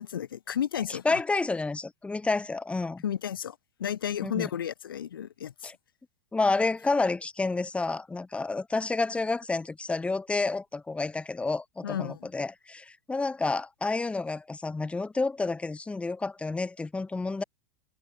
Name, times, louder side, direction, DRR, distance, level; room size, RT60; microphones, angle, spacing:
voice 1, 0.0-1.2 3.0-5.7 11.8-12.3, left 9 dB, 85° left, 0.7 m, -33 dB
voice 2, 0.9-3.0 4.2-4.5 5.6-5.7 6.3-17.4, left 3 dB, 10° left, 1.3 m, -29 dB
hypercardioid pair, 105°, 11 cm